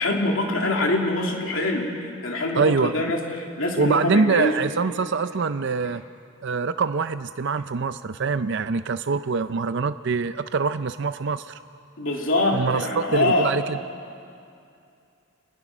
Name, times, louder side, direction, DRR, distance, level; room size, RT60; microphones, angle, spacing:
voice 1, 0.0-1.9 2.2-4.5 12.0-13.5, left 2 dB, 65° left, 0 dB, 3.1 m, -24 dB
voice 2, 2.5-2.9 3.8-6.0 6.4-11.6 12.5-13.8, right 4 dB, 55° right, 11 dB, 0.5 m, -24 dB
28.0 x 21.0 x 6.2 m, 2.5 s
head